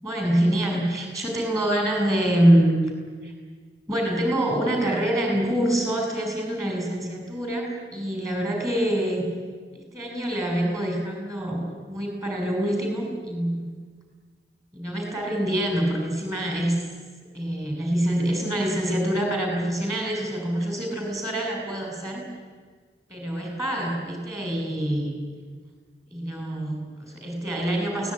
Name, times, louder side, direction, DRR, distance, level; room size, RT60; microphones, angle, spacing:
voice 1, 0.0-2.7 3.2-3.3 3.9-9.3 9.7-13.7 14.7-16.8 17.3-22.3 23.1-25.1 26.1-28.1, right 1 dB, 20° right, 1 dB, 6.5 m, -25 dB
23.0 x 18.0 x 9.8 m, 1.5 s
head